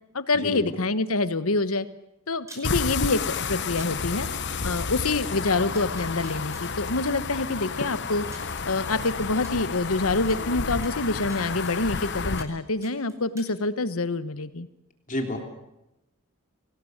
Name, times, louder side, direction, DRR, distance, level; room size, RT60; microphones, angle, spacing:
voice 1, 0.1-1.9 2.3-4.3 4.6-8.2 8.6-14.7, left 3 dB, 70° left, 13 dB, 1.2 m, -26 dB
sound 1, 2.4-2.6 3.8-3.9 5.2-5.3 5.7-6.6 7.7-7.8 8.3-8.5 9.4-9.5 10.3-10.4 10.8-12.0 12.4-12.6 12.8-13.5, right 1 dB, 15° right, 5.1 m, -47 dB
sound 2, 2.6-12.4, left 5 dB, 50° left, 1.0 m, -31 dB
voice 2, 15.1-15.4, left 1 dB, 35° left, 3 dB, 3.5 m, -29 dB
24.5 x 18.5 x 7.9 m, 0.91 s
head